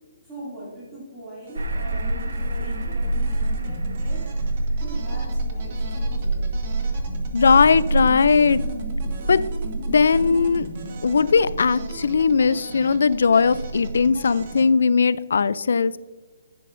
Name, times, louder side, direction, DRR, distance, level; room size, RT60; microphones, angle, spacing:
voice 1, 0.2-4.3 4.8-6.4, equal, 5° right, -10 dB, 2.4 m, -41 dB
sound 1, 1.4-14.7, right 2 dB, 30° right, 1.0 m, -39 dB
sound 2, 1.6-14.5, right 2 dB, 75° right, 0.8 m, -28 dB
voice 2, 7.3-8.6 9.3-9.4 9.9-10.7 11.0-15.9, left 5 dB, 65° left, 17 dB, 0.3 m, -18 dB
10.0 x 7.7 x 2.5 m, 1.3 s
hypercardioid pair, 175°, 0 cm